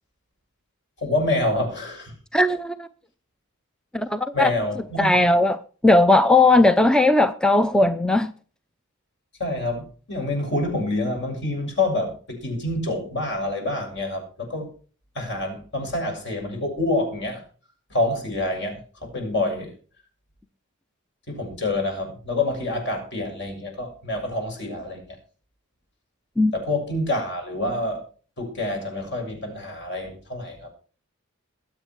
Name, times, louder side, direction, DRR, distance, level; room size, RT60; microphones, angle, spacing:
voice 1, 1.0-2.2 4.3-5.1 9.4-14.7 15.2-17.4 17.9-19.7 21.3-25.0 26.5-28.0 28.4-30.7, left 2 dB, 55° left, 7.0 m, -27 dB
voice 2, 2.3-2.9 3.9-4.5 5.0-8.3 26.4-26.5, left 2 dB, 5° left, 0.5 m, -18 dB
22.0 x 8.1 x 4.7 m
head